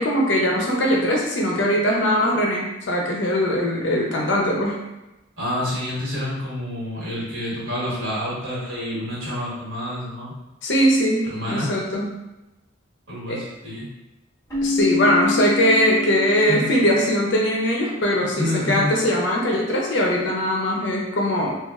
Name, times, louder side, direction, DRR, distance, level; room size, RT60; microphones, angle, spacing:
voice 1, 0.0-4.8 10.6-12.1 13.3-13.4 14.6-21.5, equal, 65° left, -2 dB, 0.5 m, -21 dB
voice 2, 5.4-10.3 11.2-11.7 13.1-13.9 16.5-16.7 18.3-18.9, left 1 dB, 80° right, -7 dB, 1.2 m, -28 dB
Keyboard (musical), 14.5-17.1, left 4 dB, 15° left, 0.9 m, -26 dB
3.0 x 2.3 x 2.3 m, 1.0 s
head